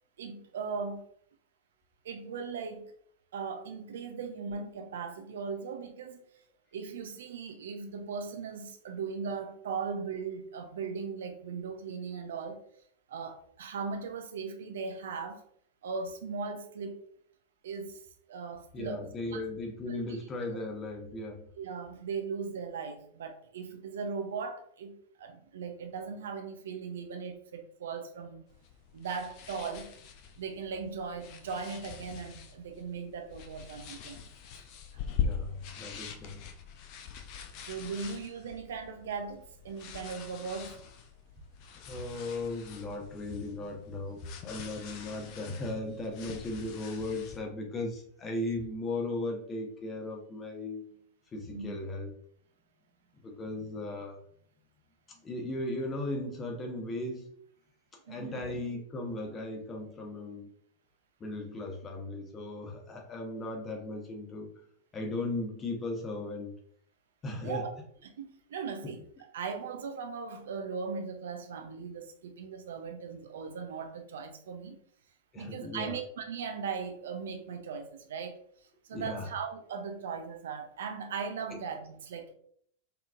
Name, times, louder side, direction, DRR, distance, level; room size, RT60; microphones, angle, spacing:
voice 1, 0.2-1.0 2.0-2.9 3.3-6.2 6.7-12.6 13.1-15.4 15.8-17.1 17.6-18.0 18.3-19.4 19.9-20.0 20.5-20.6 21.6-28.4 28.9-29.9 30.4-34.2 37.6-40.8 51.5-51.8 58.1-58.4 67.4-67.8 68.0-69.0 69.3-74.8 75.3-78.4 78.8-82.3, right 5 dB, 60° right, 0.6 m, -38 dB
voice 2, 18.7-21.5 35.2-36.4 41.9-50.9 51.3-52.1 53.2-54.2 55.2-57.3 58.1-60.5 61.2-64.6 64.9-66.6 67.2-67.6 75.3-76.0 78.9-79.3, left 2 dB, 20° left, 1.0 m, -37 dB
sound 1, 28.5-47.4, left 7 dB, 45° left, 0.6 m, -43 dB
4.4 x 3.6 x 2.4 m
figure-of-eight pair, 90°, 0 cm